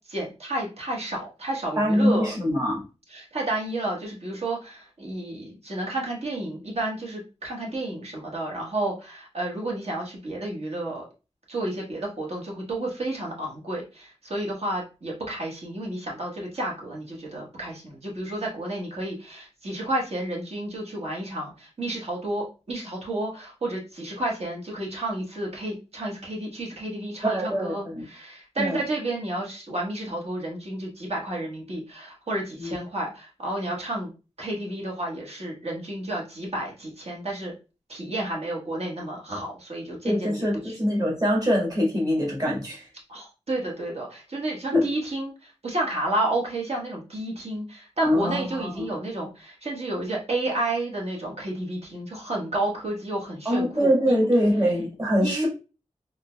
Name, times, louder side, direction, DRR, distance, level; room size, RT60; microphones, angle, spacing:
voice 1, 0.1-2.3 3.1-11.0 11.5-34.1 34.4-37.5 37.9-40.7 43.1-54.3 55.2-55.5, right 1 dB, 60° right, -2 dB, 1.3 m, -31 dB
voice 2, 1.8-2.8 27.2-28.0 28.6-28.8 32.6-32.7 40.0-42.8 44.7-44.8 48.0-48.8 53.4-55.5, equal, 30° right, -3 dB, 1.6 m, -23 dB
3.8 x 2.8 x 2.3 m, 0.31 s
wide cardioid pair, 65°, 12 cm